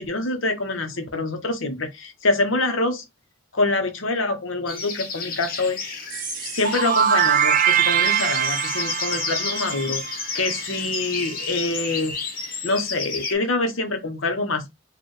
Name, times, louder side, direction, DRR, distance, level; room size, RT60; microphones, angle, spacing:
voice 1, 0.0-3.0 3.5-5.8 6.5-12.2 12.6-14.7, left 2 dB, 70° left, 1.0 m, -25 dB
sound 1, 4.7-13.3, left 4 dB, 45° left, 1.0 m, -31 dB
sound 2, 6.1-10.8, right 8 dB, 40° right, 0.3 m, -23 dB
4.4 x 2.5 x 3.2 m
head